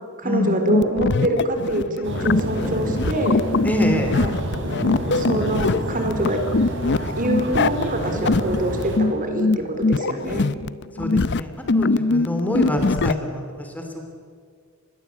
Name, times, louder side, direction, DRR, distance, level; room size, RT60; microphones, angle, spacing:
voice 1, 0.2-3.4 4.1-4.3 5.1-6.4 7.2-10.5, right 1 dB, 40° right, 5 dB, 4.1 m, -25 dB
sound 1, 0.7-13.1, left 3 dB, 55° left, 0.7 m, -22 dB
sound 2, 2.0-9.0, right 1 dB, 55° right, 4.7 m, -29 dB
voice 2, 3.6-4.2 11.0-14.0, left 1 dB, 5° left, 4 dB, 3.0 m, -25 dB
28.0 x 22.0 x 8.3 m, 2.1 s
head